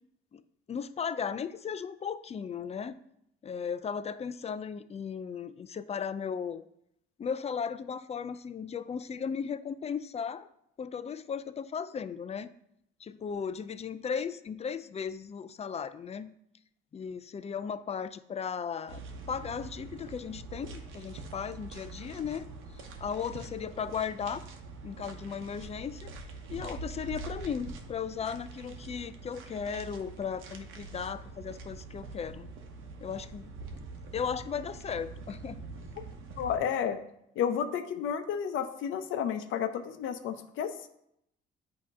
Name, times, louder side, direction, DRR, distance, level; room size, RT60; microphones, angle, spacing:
voice 1, 0.7-3.0 3.4-6.6 7.2-10.5 10.8-12.5 13.0-16.3 16.9-19.0 19.3-22.5 22.7-24.4 24.8-26.1 26.5-32.5 33.0-33.8 34.1-35.6, left 7 dB, 30° left, 14 dB, 0.4 m, -36 dB
sound 1, 18.9-36.6, right 3 dB, 90° right, 0.9 m, -44 dB
voice 2, 36.4-37.0 37.4-40.9, left 8 dB, 85° left, 8 dB, 0.7 m, -31 dB
8.3 x 2.9 x 5.2 m, 0.76 s
cardioid pair, 90°, 20 cm